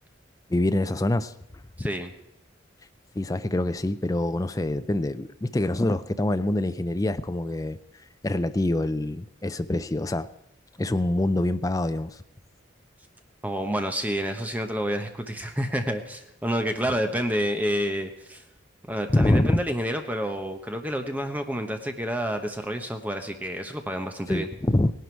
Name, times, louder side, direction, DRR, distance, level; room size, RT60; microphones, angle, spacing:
voice 1, 0.5-1.3 1.8-1.9 3.1-7.8 8.2-10.3 10.8-12.2 19.1-19.6 24.3-24.9, left 1 dB, 20° left, 0.4 m, -25 dB
voice 2, 1.8-2.1 13.4-18.4 18.9-24.5, equal, 10° right, 1.0 m, -29 dB
18.0 x 11.5 x 4.6 m
head